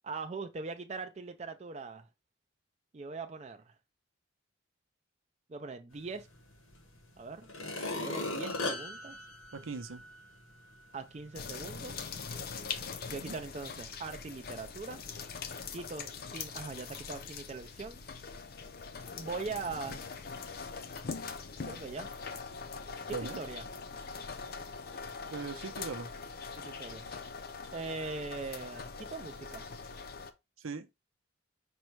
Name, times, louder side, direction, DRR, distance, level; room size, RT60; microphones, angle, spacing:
voice 1, 0.0-2.1 2.9-3.7 5.5-6.3 7.2-7.5 7.9-9.2 10.9-12.1 13.1-15.0 15.7-18.0 19.2-20.0 21.7-22.1 23.4-23.6 26.5-27.0 27.7-29.7, right 4 dB, 35° right, 0.4 m, -41 dB
sound 1, 6.7-6.8 7.4-10.3 10.8-10.9, left 2 dB, 90° left, 1.2 m, -37 dB
voice 2, 9.5-10.0 13.2-13.4 23.1-23.4 25.3-26.1 30.6-30.9, right 4 dB, 90° right, 0.7 m, -39 dB
sound 2, 11.3-30.3, left 5 dB, 50° left, 0.5 m, -42 dB
5.3 x 2.2 x 4.5 m
head